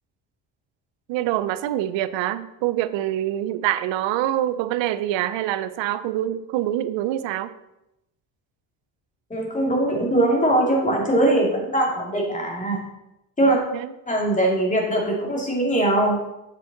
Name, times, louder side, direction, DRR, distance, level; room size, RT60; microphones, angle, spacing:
voice 1, 1.1-7.5 13.4-13.9, right 13 dB, 80° right, 14 dB, 0.6 m, -25 dB
voice 2, 9.3-12.8 13.4-13.6 14.1-16.2, right 1 dB, 15° left, -1 dB, 2.2 m, -21 dB
7.5 x 6.5 x 3.9 m, 0.90 s
cardioid pair, 115°, 44 cm